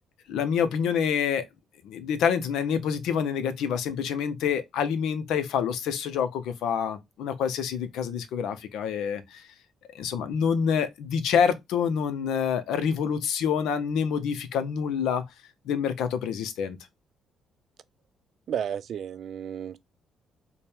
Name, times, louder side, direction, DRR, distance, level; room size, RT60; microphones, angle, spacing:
voice 1, 0.3-1.5 1.8-9.4 9.9-15.2 15.7-16.8, left 7 dB, 85° left, 0.6 m, -27 dB
voice 2, 18.5-19.8, right 9 dB, 65° right, 0.3 m, -32 dB
4.3 x 2.2 x 3.3 m
cardioid pair, 90°, 0 cm